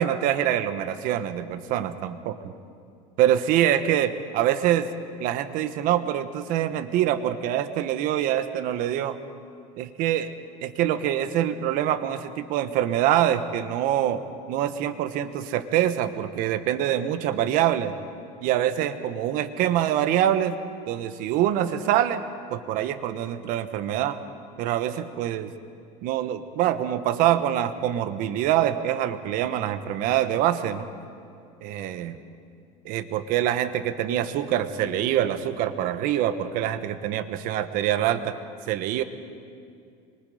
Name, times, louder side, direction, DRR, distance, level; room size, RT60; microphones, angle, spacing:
voice 1, 0.0-2.5 3.2-4.9 5.2-9.2 9.8-10.3 10.6-14.2 14.5-17.9 18.4-20.6 20.9-22.2 22.5-24.2 24.6-25.5 26.0-30.9 31.6-32.2 32.8-38.4 38.7-39.0, right 11 dB, 55° right, 11 dB, 1.3 m, -25 dB
26.0 x 23.5 x 5.1 m, 2.4 s
supercardioid pair, 135°, 16 cm